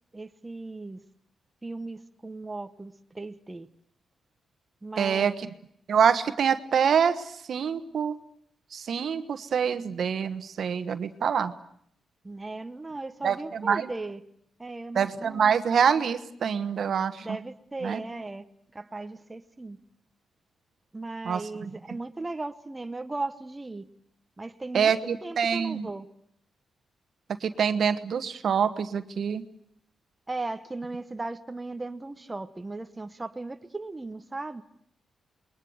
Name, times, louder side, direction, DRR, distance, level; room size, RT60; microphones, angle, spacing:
voice 1, 0.1-1.0 1.6-3.7 4.8-5.4 12.2-14.2 14.6-15.5 17.2-18.4 18.7-19.8 20.9-23.9 24.4-24.9 25.2-26.1 30.3-34.6, right 2 dB, 20° right, 8 dB, 1.0 m, -37 dB
voice 2, 5.0-5.5 5.9-8.2 8.7-11.5 13.2-13.9 14.9-17.4 17.8-18.0 21.2-21.4 24.7-25.9 27.4-29.4, right 7 dB, 65° right, 11 dB, 1.3 m, -25 dB
27.5 x 21.5 x 8.0 m, 0.69 s
cardioid pair, 95°, 0 cm